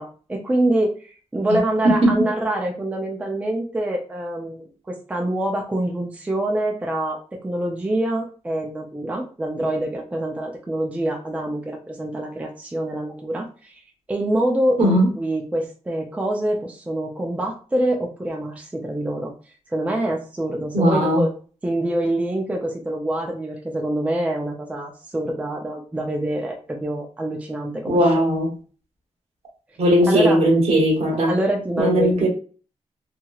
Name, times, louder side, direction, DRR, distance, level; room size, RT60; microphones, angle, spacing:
voice 1, 0.0-13.8 14.1-19.3 19.7-21.3 21.6-28.1 30.1-30.4 31.3-32.3, right 1 dB, 10° right, 0.4 m, -25 dB
voice 2, 1.8-2.2 14.8-15.1 20.7-21.2 27.9-28.5 29.8-31.3 31.8-32.3, equal, 60° right, 1.0 m, -18 dB
2.9 x 2.8 x 2.3 m
wide cardioid pair, 150°, 12 cm